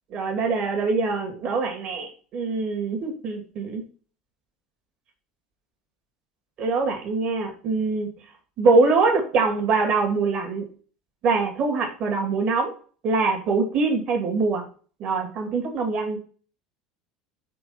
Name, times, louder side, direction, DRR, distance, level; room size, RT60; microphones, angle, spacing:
voice 1, 0.1-3.8 6.6-8.1 8.6-10.6 11.2-12.7 13.0-14.6 15.0-16.2, right 3 dB, 50° right, 2 dB, 2.7 m, -23 dB
6.2 x 4.4 x 5.9 m, 0.40 s
hypercardioid pair, 70°, 2 cm